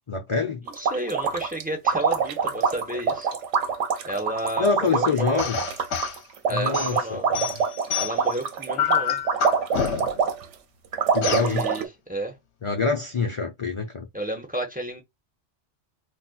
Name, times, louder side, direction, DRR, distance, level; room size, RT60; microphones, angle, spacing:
voice 1, 0.1-0.6 4.6-5.6 6.5-7.6 11.1-11.6 12.6-14.1, left 4 dB, 40° left, 0.5 m, -26 dB
voice 2, 0.6-3.3 4.1-5.5 6.5-7.4 8.0-9.2 11.2-12.3 14.1-15.0, right 1 dB, 5° right, 1.0 m, -32 dB
sound 1, 0.7-10.5 10.9-11.9, right 6 dB, 75° right, 1.0 m, -25 dB
sound 2, 5.4-6.2 6.7-8.3 8.8-10.3 11.2-11.5, left 7 dB, 65° left, 1.0 m, -27 dB
4.1 x 2.4 x 2.3 m
omnidirectional pair, 1.3 m